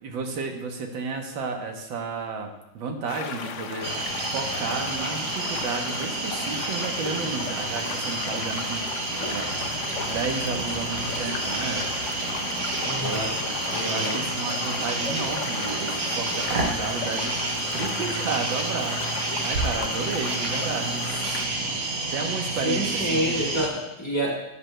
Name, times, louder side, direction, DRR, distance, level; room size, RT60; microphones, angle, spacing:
voice 1, 0.0-8.8 9.3-9.5 10.1-11.9 12.4-12.5 13.0-13.4 13.8-17.4 17.7-21.0 22.1-23.4, right 4 dB, 90° right, 3 dB, 1.8 m, -32 dB
sound 1, 3.1-21.5, left 6 dB, 65° left, 0.7 m, -35 dB
sound 2, 3.8-23.7, right 3 dB, 70° right, 2.0 m, -29 dB
voice 2, 12.8-13.4 13.7-14.2 22.6-24.4, equal, 15° left, -5 dB, 1.5 m, -28 dB
12.5 x 8.7 x 2.3 m, 0.93 s
omnidirectional pair, 2.0 m